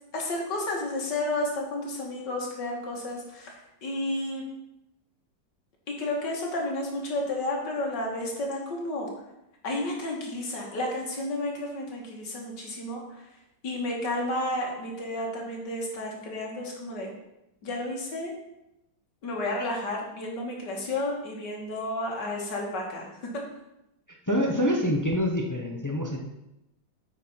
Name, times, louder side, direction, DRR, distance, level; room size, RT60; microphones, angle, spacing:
voice 1, 0.1-3.5 3.8-4.4 5.9-9.1 9.6-13.0 13.6-17.1 17.6-18.3 19.2-23.1 23.3-23.4, left 1 dB, 70° left, -1 dB, 2.3 m, -31 dB
voice 2, 24.3-26.2, equal, 30° left, 1 dB, 0.3 m, -26 dB
8.3 x 4.8 x 5.6 m, 0.89 s
omnidirectional pair, 2.0 m